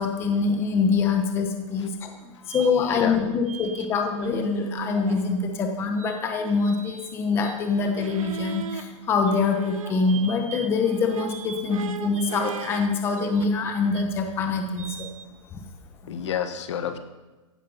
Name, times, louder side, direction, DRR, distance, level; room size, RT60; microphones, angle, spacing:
voice 1, 0.0-2.1 2.5-15.1, left 4 dB, 15° left, 4 dB, 1.1 m, -24 dB
sound 1, 2.5-2.7 3.5-3.9 4.1-5.6 6.0-8.8 9.2-12.9 13.1-13.5 13.9-14.0 14.8-15.3, right 7 dB, 80° right, 1.6 m, -37 dB
voice 2, 3.0-3.4 16.1-17.0, left 8 dB, 55° left, 9 dB, 1.6 m, -30 dB
16.0 x 11.5 x 5.7 m, 1.2 s
hypercardioid pair, 165°, 17 cm